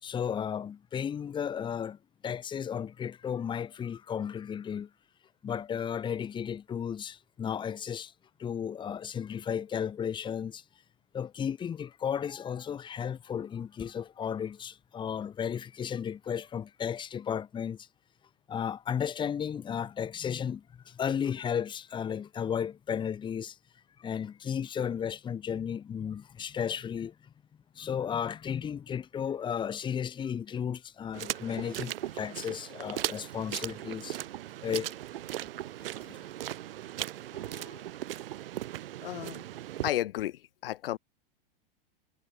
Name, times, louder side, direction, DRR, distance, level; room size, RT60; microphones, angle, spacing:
voice 1, 0.0-2.0 2.2-4.9 5.4-8.1 8.4-10.6 11.1-17.9 18.5-23.6 24.0-27.3 27.7-34.2 34.6-34.9 35.8-36.2, left 8 dB, 15° left, 2.8 m, -34 dB
sound 1, 31.1-39.9, right 13 dB, 75° right, 6.6 m, -38 dB
voice 2, 37.3-37.9 39.0-39.4 39.8-41.0, left 13 dB, 70° left, 4.2 m, -34 dB
supercardioid pair, 155°, 29 cm